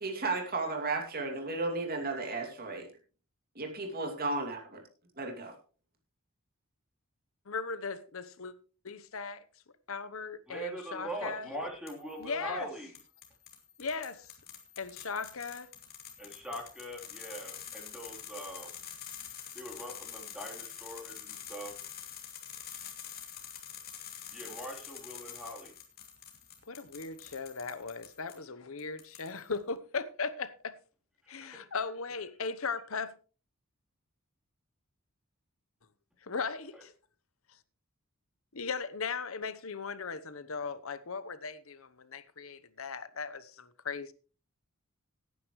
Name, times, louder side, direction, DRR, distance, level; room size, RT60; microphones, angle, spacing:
voice 1, 0.0-2.9 3.5-4.6 5.2-5.5, right 3 dB, 45° right, 2.6 m, -34 dB
voice 2, 7.5-8.5 8.8-9.4 9.9-11.5 12.2-12.7 13.8-14.3 14.8-15.7 26.7-30.8 31.3-33.1 36.2-36.9 38.5-44.1, left 5 dB, 70° left, 1.0 m, -38 dB
voice 3, 10.5-13.0 16.2-18.7 19.5-21.7 24.3-25.7 31.2-31.6, equal, 5° right, 3.5 m, -42 dB
sound 1, 11.9-12.3 12.9-28.4 28.8-29.6, left 9 dB, 45° left, 2.6 m, -46 dB
17.5 x 9.6 x 3.2 m
head